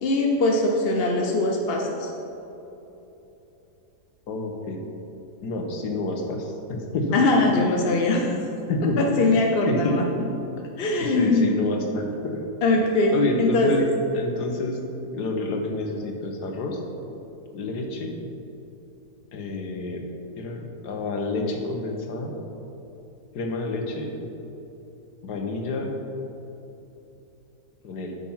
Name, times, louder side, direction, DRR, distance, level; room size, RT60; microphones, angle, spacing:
voice 1, 0.0-2.1 7.1-8.3 9.0-10.0 10.8-11.5 12.6-13.9, left 2 dB, 55° left, 1 dB, 0.7 m, -21 dB
voice 2, 4.3-4.8 5.4-7.2 7.5-7.7 8.3-9.3 9.7-10.0 11.0-12.4 13.1-13.8 14.1-14.8 15.1-16.8 17.5-18.1 19.3-20.1 20.4-22.3 23.3-24.1 25.2-26.0 27.8-28.2, left 2 dB, 75° left, 3 dB, 1.6 m, -28 dB
8.8 x 7.1 x 5.5 m, 3.0 s
omnidirectional pair, 1.8 m